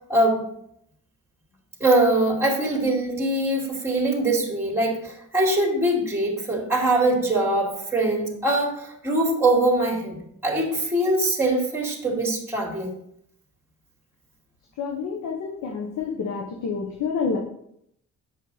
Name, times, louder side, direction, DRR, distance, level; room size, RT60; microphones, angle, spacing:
voice 1, 0.1-0.4 1.8-12.9, right 1 dB, 10° right, -2 dB, 2.5 m, -22 dB
voice 2, 14.8-17.4, left 5 dB, 75° left, 1 dB, 1.3 m, -28 dB
7.7 x 6.4 x 4.1 m, 0.73 s
cardioid pair, 90°, 30 cm